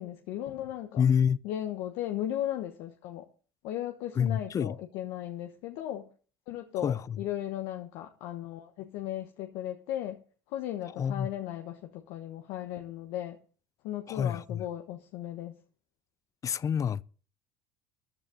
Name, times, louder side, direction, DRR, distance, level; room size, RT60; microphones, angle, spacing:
voice 1, 0.0-1.0 1.4-3.2 3.6-6.1 6.5-10.2 10.5-13.4 13.8-15.5, left 12 dB, 70° left, 1.2 m, -36 dB
voice 2, 1.0-1.4 4.2-4.7 6.8-7.2 11.0-11.3 14.1-14.6 16.4-17.0, left 7 dB, 35° left, 0.5 m, -27 dB
14.5 x 9.9 x 3.8 m
supercardioid pair, 95°, 10 cm